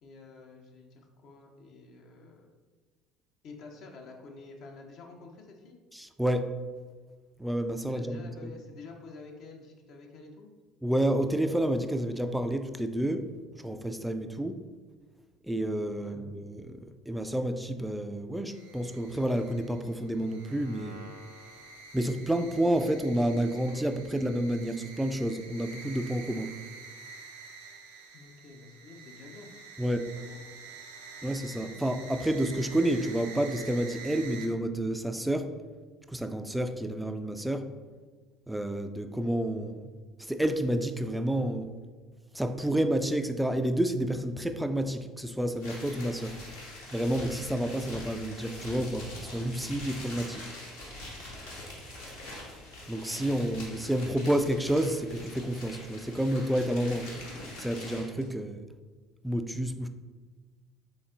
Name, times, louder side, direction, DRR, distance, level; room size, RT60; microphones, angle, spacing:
voice 1, 0.0-2.5 3.4-5.8 7.9-10.5 16.0-16.2 28.1-29.5 30.3-30.7, left 3 dB, 55° left, 2 dB, 0.5 m, -49 dB
voice 2, 5.9-6.5 7.4-8.5 10.8-14.6 15.5-21.0 21.9-26.5 29.8-30.1 31.2-35.5 36.1-37.7 38.5-39.9 40.2-41.7 42.3-46.4 46.9-50.5 52.9-57.1 57.6-58.7 59.2-59.9, right 1 dB, 5° right, 7 dB, 0.3 m, -30 dB
sound 1, 18.5-34.5, right 4 dB, 80° right, 0.5 m, -48 dB
sound 2, 45.6-58.2, left 1 dB, 75° left, 1.0 m, -44 dB
3.9 x 3.4 x 2.4 m, 1.4 s
figure-of-eight pair, 60°, 0 cm